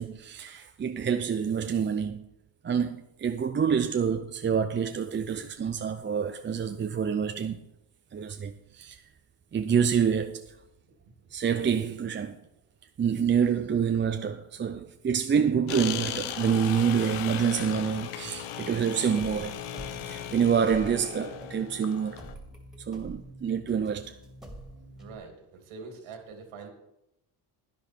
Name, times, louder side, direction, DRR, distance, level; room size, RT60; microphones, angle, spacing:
voice 1, 0.0-2.2 2.6-7.6 8.1-9.0 9.5-10.5 11.3-12.4 13.0-19.6 20.1-22.2 22.8-24.2, right 7 dB, 25° right, 0.5 m, -27 dB
sound 1, 15.7-22.3, left 10 dB, 85° left, 1.0 m, -37 dB
sound 2, 19.2-25.2, right 1 dB, ahead, 2.1 m, -46 dB
voice 2, 25.0-26.7, right 4 dB, 80° right, 2.8 m, -45 dB
10.5 x 10.5 x 4.4 m
cardioid pair, 95°, 49 cm